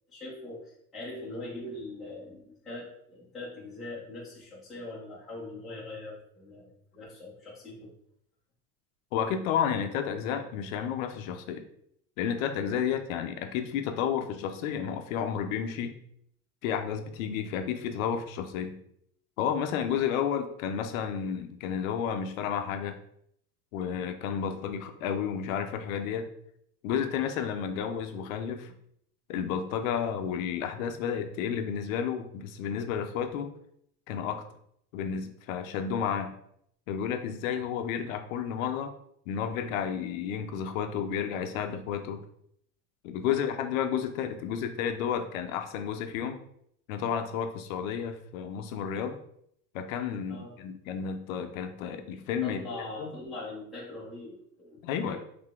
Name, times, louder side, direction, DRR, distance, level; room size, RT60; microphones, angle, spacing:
voice 1, 0.1-7.9 43.3-43.4 50.3-50.6 52.4-55.2, left 2 dB, ahead, -8 dB, 0.4 m, -42 dB
voice 2, 9.1-11.6 12.2-16.0 16.6-18.8 19.4-23.0 23.7-26.3 26.8-28.7 29.3-33.5 34.1-34.4 34.9-36.3 36.9-38.9 39.3-42.2 43.0-46.4 46.9-49.2 49.7-53.1 54.8-55.2, left 8 dB, 55° left, 6 dB, 0.5 m, -31 dB
3.8 x 3.2 x 3.5 m, 0.71 s
supercardioid pair, 160°, 50 cm